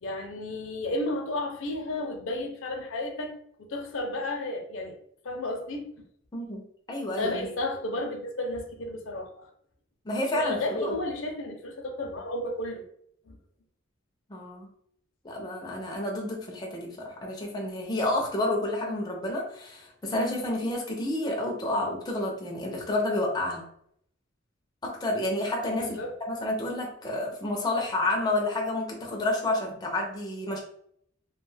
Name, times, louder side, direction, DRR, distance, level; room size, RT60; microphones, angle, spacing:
voice 1, 0.0-3.3 3.6-5.0 5.2-5.9 7.2-9.5 10.3-12.8 13.3-13.4 25.7-26.1, left 1 dB, 65° left, 3 dB, 0.6 m, -33 dB
voice 2, 6.3-7.5 10.1-10.9 14.3-14.7 15.2-23.7 24.8-26.0 26.3-30.6, left 1 dB, 20° left, 0 dB, 0.5 m, -30 dB
2.4 x 2.2 x 3.2 m, 0.68 s
head